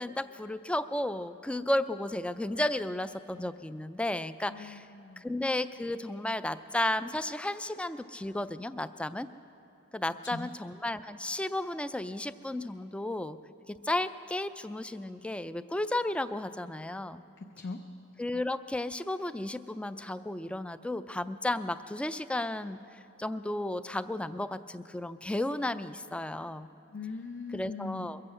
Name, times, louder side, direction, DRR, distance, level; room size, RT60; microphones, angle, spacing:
voice 1, 0.0-4.9 5.2-9.3 9.9-13.4 13.7-17.2 18.2-22.8 23.2-26.7 27.5-28.2, left 1 dB, 5° left, 13 dB, 0.3 m, -33 dB
voice 2, 4.5-5.2 10.2-10.5 17.4-17.8 26.9-28.1, left 4 dB, 60° left, 4 dB, 0.7 m, -40 dB
22.0 x 7.7 x 7.9 m, 2.7 s
head